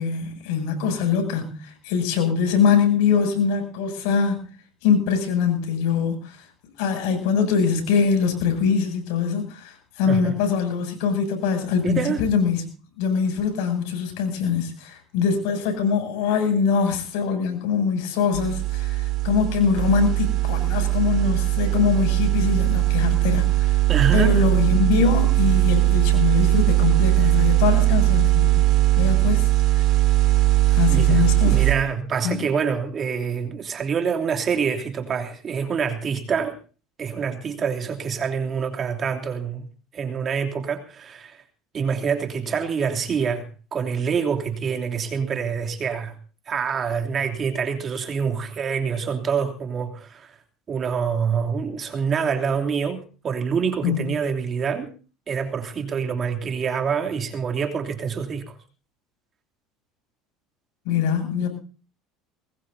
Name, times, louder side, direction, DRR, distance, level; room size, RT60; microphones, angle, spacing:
voice 1, 0.0-4.4 4.8-6.5 6.8-12.7 13.0-23.8 24.1-28.7 29.0-29.9 30.7-31.7 32.2-32.4 53.8-54.1 60.9-61.5, left 6 dB, 80° left, 5 dB, 7.1 m, -23 dB
voice 2, 11.8-12.2 23.9-24.4 30.9-36.6 37.0-39.7 39.9-41.4 41.7-46.1 46.5-50.3 50.7-54.9 55.3-58.5, right 6 dB, 35° right, 4 dB, 2.9 m, -26 dB
sound 1, 18.3-31.7, right 17 dB, 55° right, 3.2 m, -19 dB
22.5 x 20.0 x 2.7 m, 0.37 s
supercardioid pair, 115°, 0 cm